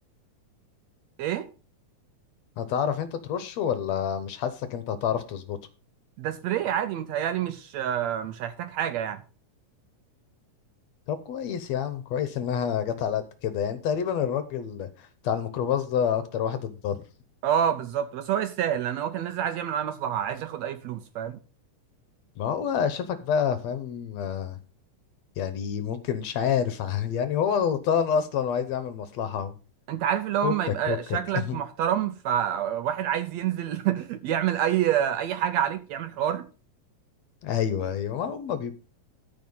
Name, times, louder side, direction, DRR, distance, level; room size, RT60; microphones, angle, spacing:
voice 1, 2.6-5.6 11.1-17.0 22.4-24.6 25.4-29.5 30.4-31.6 37.4-38.7, left 8 dB, 70° left, 1.9 m, -28 dB
voice 2, 6.2-9.2 17.4-21.4 29.9-36.5, right 10 dB, 75° right, 1.7 m, -27 dB
13.5 x 5.1 x 5.5 m
omnidirectional pair, 3.6 m